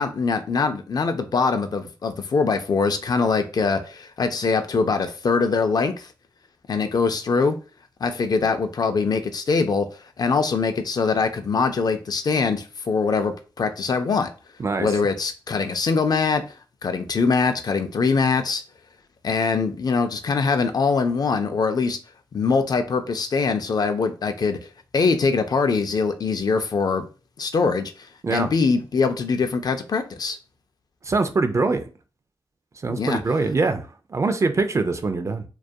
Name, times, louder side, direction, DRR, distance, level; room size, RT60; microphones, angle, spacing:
voice 1, 0.0-6.1 6.7-7.6 8.0-14.3 14.8-18.6 19.2-22.0 22.3-24.6 24.9-27.0 27.4-30.4 32.9-33.2, left 4 dB, 50° left, 0.4 m, -23 dB
voice 2, 14.6-14.9 28.2-28.5 31.0-31.9 32.8-35.4, right 3 dB, 35° right, 0.3 m, -23 dB
2.3 x 2.2 x 2.6 m
cardioid pair, 70°, 9 cm